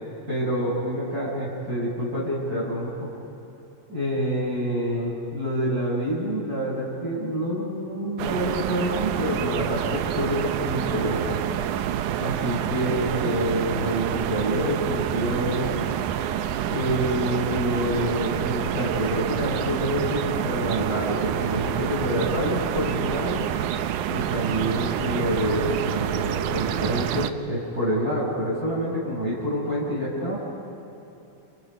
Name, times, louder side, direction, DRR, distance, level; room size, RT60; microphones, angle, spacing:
voice 1, 0.3-3.1 3.9-11.4 12.2-15.9 16.7-23.5 24.1-30.4, equal, 25° right, -8 dB, 6.6 m, -27 dB
sound 1, 8.2-27.3, right 10 dB, 80° right, 2.3 m, -27 dB
30.0 x 28.0 x 5.4 m, 2.9 s
omnidirectional pair, 3.5 m